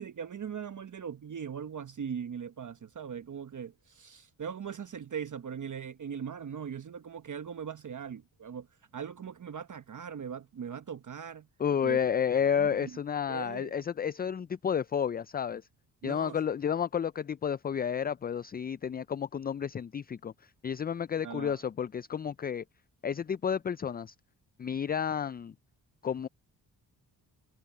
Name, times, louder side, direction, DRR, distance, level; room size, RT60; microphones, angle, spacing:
voice 1, 0.0-8.7 8.9-11.5 11.8-12.0 12.6-13.0 13.3-13.7 16.0-16.4 21.2-21.6, right 7 dB, 45° right, 1.1 m, -40 dB
voice 2, 11.6-15.6 16.0-20.3 20.6-22.6 23.0-24.1 24.6-25.5 26.0-26.3, left 8 dB, 25° left, 0.4 m, -31 dB
supercardioid pair, 50°, 44 cm